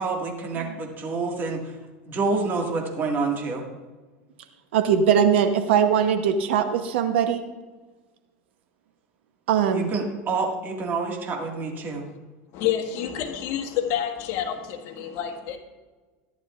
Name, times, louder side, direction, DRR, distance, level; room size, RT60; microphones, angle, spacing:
voice 1, 0.0-1.6 2.1-3.6 9.7-12.1, right 4 dB, 35° right, 1 dB, 1.9 m, -27 dB
voice 2, 4.7-7.4 9.5-10.0, right 8 dB, 85° right, 6 dB, 0.9 m, -21 dB
voice 3, 12.5-15.6, left 10 dB, 55° left, 2 dB, 1.7 m, -28 dB
14.5 x 11.0 x 2.5 m, 1.3 s
supercardioid pair, 125°, 6 cm